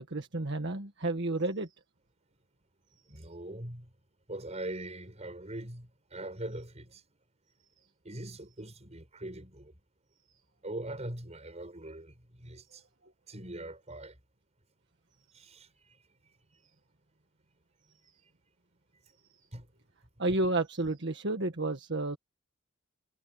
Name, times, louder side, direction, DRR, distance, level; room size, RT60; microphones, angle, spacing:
voice 1, 0.0-1.7 20.2-22.2, right 2 dB, 60° right, 1.6 m, -31 dB
voice 2, 3.1-3.9 4.3-7.0 8.0-9.7 10.6-12.8 13.3-14.1 15.3-16.0 19.5-19.7, right 1 dB, 35° right, 6.6 m, -42 dB
head